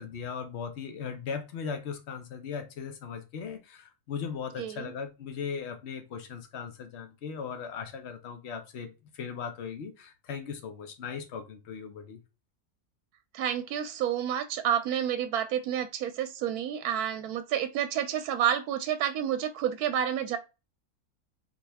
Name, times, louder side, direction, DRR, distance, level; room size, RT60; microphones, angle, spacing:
voice 1, 0.0-12.2, left 6 dB, 55° left, 1.0 m, -38 dB
voice 2, 4.6-4.9 13.3-20.4, right 9 dB, 85° right, 1.1 m, -29 dB
4.3 x 2.9 x 3.4 m
omnidirectional pair, 1.6 m